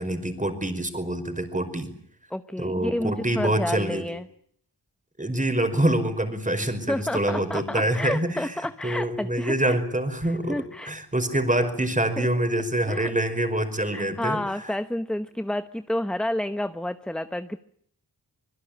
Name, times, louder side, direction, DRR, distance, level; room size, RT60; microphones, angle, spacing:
voice 1, 0.0-1.9 2.6-4.1 5.2-8.5 8.8-14.7, right 1 dB, 20° right, 9 dB, 5.2 m, -26 dB
voice 2, 2.3-4.3 6.9-9.8 10.2-10.9 12.2-12.3 12.9-13.1 13.9-17.6, left 1 dB, ahead, 10 dB, 1.0 m, -30 dB
25.5 x 22.5 x 8.8 m, 0.66 s
wide cardioid pair, 80°, 40 cm